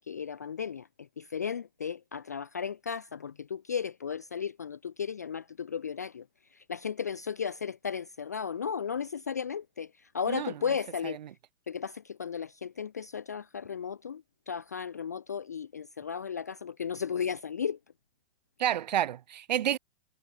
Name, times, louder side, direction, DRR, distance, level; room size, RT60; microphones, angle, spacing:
voice 1, 0.0-6.2 6.5-11.2 11.7-17.8, left 7 dB, 15° left, 0.5 m, -35 dB
voice 2, 18.6-19.8, right 11 dB, 40° right, 1.0 m, -29 dB
hypercardioid pair, 175°, 34 cm